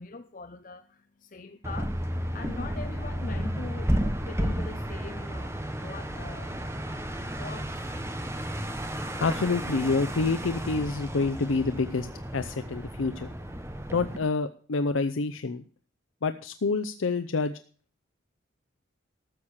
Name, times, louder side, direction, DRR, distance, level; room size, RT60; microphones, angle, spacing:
voice 1, 0.0-6.8 7.4-8.1, left 3 dB, 40° left, 9 dB, 0.6 m, -43 dB
sound 1, 1.6-14.2, equal, 15° right, 1.0 m, -33 dB
voice 2, 9.2-12.1 12.3-13.3 13.9-15.6 16.2-17.5, left 4 dB, 90° left, 10 dB, 0.6 m, -27 dB
13.5 x 7.3 x 6.4 m, 0.44 s
head